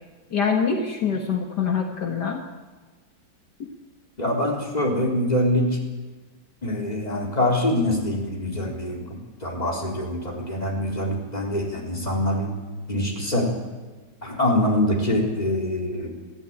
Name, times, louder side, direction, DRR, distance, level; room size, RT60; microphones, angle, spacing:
voice 1, 0.3-2.4, left 6 dB, 70° left, 3 dB, 2.1 m, -24 dB
voice 2, 4.2-5.8 6.6-9.0 9.4-12.5 12.9-13.5 14.2-16.1, left 1 dB, 20° left, -1 dB, 4.1 m, -24 dB
21.5 x 14.5 x 8.9 m, 1.3 s
omnidirectional pair, 1.9 m